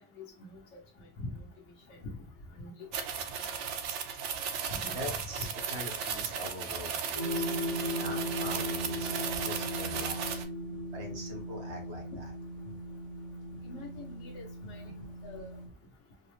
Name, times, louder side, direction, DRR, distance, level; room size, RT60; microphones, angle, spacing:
voice 1, 2.6-2.9 4.7-4.8 5.4-5.5 13.6-14.8 15.2-15.5, left 2 dB, 90° left, -2 dB, 1.0 m, -43 dB
sound 1, 2.9-10.4, right 7 dB, 85° right, 0.9 m, -36 dB
voice 2, 4.9-7.5 7.9-10.4 10.9-12.3, equal, 65° right, 0 dB, 1.3 m, -43 dB
sound 2, 7.1-15.7, equal, 35° left, 1.0 m, -37 dB
4.1 x 2.0 x 3.0 m, 0.38 s
omnidirectional pair, 1.2 m